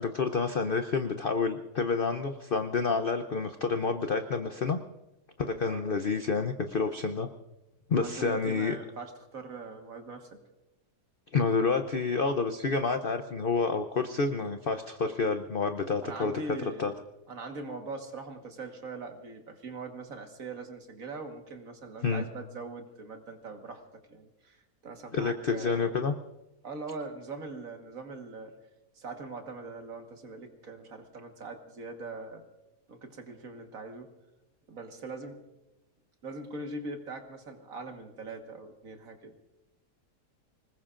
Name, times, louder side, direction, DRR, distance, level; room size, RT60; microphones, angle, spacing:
voice 1, 0.0-4.8 5.4-7.3 7.9-8.8 11.3-16.4 16.8-16.9 22.0-22.2 25.1-26.1, left 4 dB, 55° left, 7 dB, 0.6 m, -29 dB
voice 2, 8.0-10.4 16.0-16.9 17.3-23.8 24.1-25.9 26.6-28.5 29.0-32.4 32.9-34.1 34.7-35.4 36.2-39.4, right 3 dB, 55° right, 4 dB, 1.9 m, -42 dB
26.0 x 20.0 x 2.5 m, 0.99 s
omnidirectional pair, 1.8 m